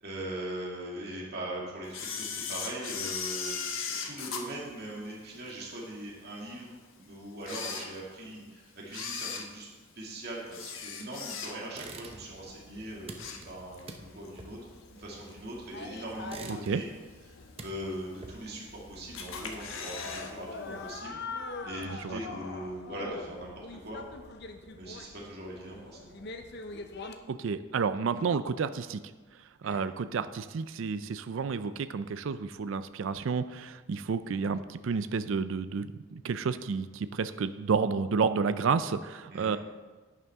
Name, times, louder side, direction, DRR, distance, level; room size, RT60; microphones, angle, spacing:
voice 1, 0.0-9.7 10.0-14.6 15.0-16.9 17.6-21.2 21.6-24.0 24.8-26.2 29.6-29.8 39.3-39.5, right 1 dB, 50° right, -3 dB, 2.3 m, -41 dB
Camera, 1.9-5.5 6.0-6.1 6.8-6.9 7.3-8.4 8.8-11.9 12.2-12.5 12.9-13.9 14.2-14.3 15.3-15.4 16.0-16.4 16.8-16.9 17.1-17.2 17.3-17.4 18.2-18.7 19.1-20.3 20.6-20.7 20.9-21.0, left 6 dB, 70° left, 1.2 m, -38 dB
sound 1, 11.7-12.5 12.7-15.7 16.1-17.0 17.3-18.7, right 3 dB, 25° right, 0.7 m, -47 dB
sound 2, 12.1-27.2, left 3 dB, 50° left, 0.7 m, -44 dB
voice 2, 21.8-22.2 27.3-29.0 29.6-39.6, right 5 dB, 65° right, 12 dB, 0.4 m, -30 dB
11.0 x 9.4 x 3.6 m, 1.3 s
head